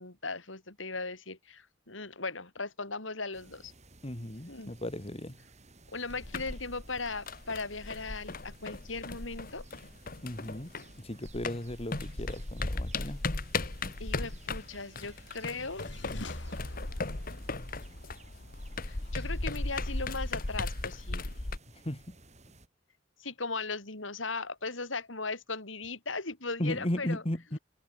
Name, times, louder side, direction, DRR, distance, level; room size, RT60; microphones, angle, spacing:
voice 1, 0.0-3.7 4.5-4.7 5.9-9.6 14.0-15.9 18.8-21.3 23.2-27.2, left 3 dB, 85° left, 5.8 m, -38 dB
sound 1, 3.3-22.7, right 2 dB, 35° right, 6.8 m, -57 dB
voice 2, 4.0-5.4 10.2-13.2 21.8-22.2 26.6-27.6, left 1 dB, 30° left, 2.2 m, -36 dB
sound 2, 6.1-11.0 11.2-21.6, left 3 dB, 45° left, 1.6 m, -37 dB
sound 3, 14.1-19.7, left 1 dB, 65° left, 6.3 m, -47 dB
head